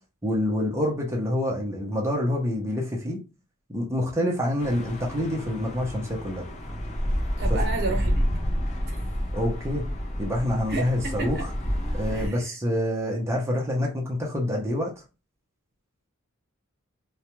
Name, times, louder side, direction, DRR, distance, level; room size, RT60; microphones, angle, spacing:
voice 1, 0.2-3.2 3.7-6.4 7.5-7.6 9.3-9.9 10.2-11.5 11.9-14.9, left 1 dB, 15° right, 0.6 m, -27 dB
sound 1, 4.6-12.3, equal, 35° left, 0.5 m, -29 dB
voice 2, 7.4-8.2 8.9-9.0 10.7-11.4 12.1-12.4, right 3 dB, 50° right, 0.9 m, -32 dB
2.3 x 2.1 x 2.9 m
head